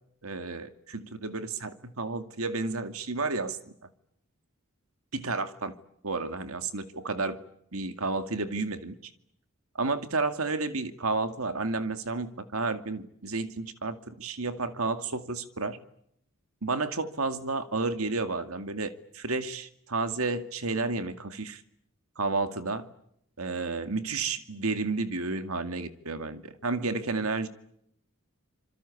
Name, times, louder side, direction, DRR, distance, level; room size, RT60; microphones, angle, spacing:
voice 1, 0.2-3.6 5.1-5.7 6.0-7.4 7.7-9.0 9.7-15.8 16.6-21.6 22.2-22.9 23.4-27.5, right 3 dB, 85° right, 9 dB, 2.3 m, -31 dB
27.0 x 25.5 x 8.5 m, 0.73 s
head